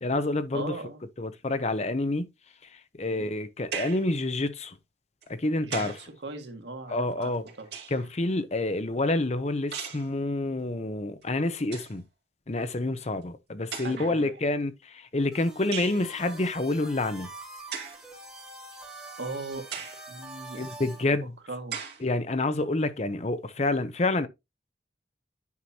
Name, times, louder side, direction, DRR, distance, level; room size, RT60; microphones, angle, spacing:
voice 1, 0.0-0.7 1.2-2.3 2.7-4.8 5.3-6.0 6.9-7.4 7.9-12.0 12.5-17.3 20.6-21.3 22.0-24.3, left 2 dB, 40° left, 0.7 m, -28 dB
voice 2, 0.5-1.0 3.1-3.3 5.6-7.7 13.8-14.4 19.2-21.8, right 2 dB, 85° right, 1.8 m, -40 dB
sound 1, 3.7-4.1 5.2-6.1 7.2-8.1 9.7-10.1 11.2-11.3 11.6-12.0 13.0-13.1 13.7-14.2 15.7-16.0 17.7-18.0 18.7-18.8 19.7-20.1 20.7-20.8 21.7-22.0, right 7 dB, 70° right, 2.5 m, -37 dB
sound 2, 15.3-21.0, right 2 dB, 5° right, 3.3 m, -45 dB
9.6 x 5.7 x 2.8 m
head